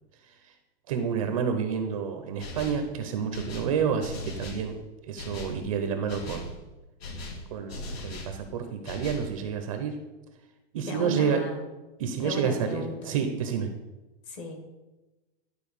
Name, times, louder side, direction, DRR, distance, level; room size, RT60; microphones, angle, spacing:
voice 1, 0.2-0.5 0.9-4.8 5.0-6.6 7.5-10.0 10.7-11.4 12.0-13.7, right 7 dB, 30° right, 6 dB, 0.8 m, -29 dB
sound 1, 2.4-2.9 3.3-4.7 5.2-5.6 6.1-6.5 7.0-8.4 8.8-9.3, left 2 dB, 70° left, 2.3 m, -38 dB
voice 2, 10.9-11.6 12.2-13.1 14.3-14.6, left 3 dB, 30° left, 3 dB, 1.6 m, -36 dB
11.5 x 4.4 x 7.2 m, 1.1 s
supercardioid pair, 175°, 32 cm